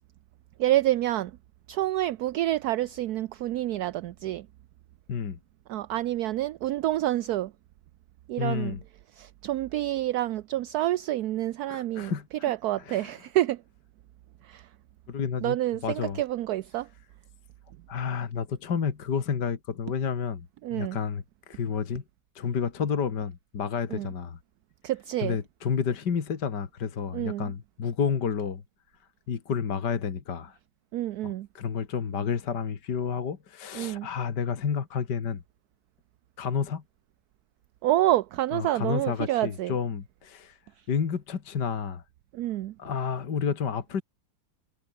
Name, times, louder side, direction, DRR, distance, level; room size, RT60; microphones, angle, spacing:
voice 1, 0.6-1.3 1.7-4.5 5.7-7.5 8.3-8.8 9.1-12.1 12.4-13.6 14.4-14.7 15.4-16.9 20.6-21.0 23.9-24.1 24.8-25.4 27.1-27.5 30.9-31.5 33.7-34.1 37.8-39.7 40.8-40.9 42.3-42.7, right 14 dB, 70° right, 1.0 m, -28 dB
voice 2, 5.1-5.4 8.4-8.8 11.7-12.5 12.9-13.1 15.1-15.6 15.8-16.2 17.9-22.0 22.4-24.4 25.2-28.6 29.3-30.6 31.2-35.4 36.4-36.8 38.5-40.6 40.9-42.0 42.8-44.0, left 6 dB, 60° left, 2.5 m, -30 dB
omnidirectional pair, 2.1 m